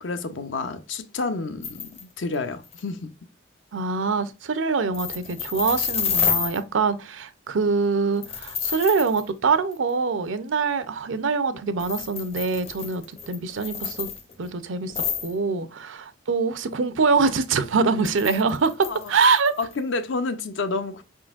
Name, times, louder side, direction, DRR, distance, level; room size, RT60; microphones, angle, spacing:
voice 1, 0.0-3.1 18.9-19.1 19.6-21.0, left 3 dB, 75° left, 0.6 m, -29 dB
sound 1, 1.6-2.0 2.3-2.4 2.6-2.8 4.9-6.6 8.2-9.2 9.7-9.8 11.8-14.5 14.9-15.3 18.0-19.7, left 7 dB, 35° left, 0.6 m, -29 dB
voice 2, 3.7-14.1 14.4-14.9 15.2-19.5, right 4 dB, 85° right, 0.6 m, -24 dB
5.1 x 3.8 x 2.4 m
head